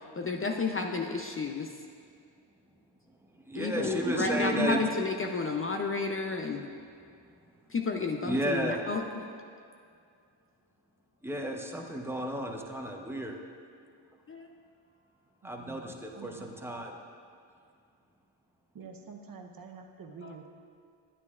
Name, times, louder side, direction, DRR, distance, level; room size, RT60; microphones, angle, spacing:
voice 1, 0.2-1.7 3.5-6.7 7.7-9.0 14.3-14.5 20.2-20.3, left 4 dB, 30° left, 3 dB, 0.5 m, -31 dB
voice 2, 3.4-4.8 8.2-8.8 11.2-13.4 15.4-17.0, right 1 dB, 5° right, 1 dB, 0.9 m, -32 dB
voice 3, 15.4-15.8 16.1-16.6 18.7-20.5, right 5 dB, 45° right, 3 dB, 0.9 m, -47 dB
9.7 x 9.3 x 2.4 m, 2.3 s
cardioid pair, 65°, 48 cm